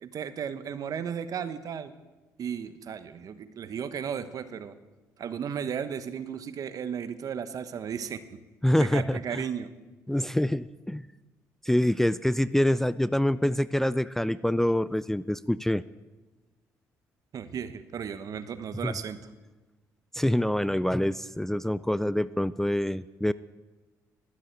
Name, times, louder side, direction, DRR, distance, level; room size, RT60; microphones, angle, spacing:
voice 1, 0.0-1.9 2.4-4.7 5.2-8.2 8.8-9.7 17.3-19.2, right 7 dB, 55° right, 12 dB, 1.0 m, -35 dB
voice 2, 8.6-9.4 10.1-11.1 11.6-15.8 18.8-18.9 20.1-23.3, left 1 dB, 5° left, 16 dB, 0.3 m, -26 dB
13.0 x 7.5 x 8.9 m, 1.2 s
supercardioid pair, 65°, 7 cm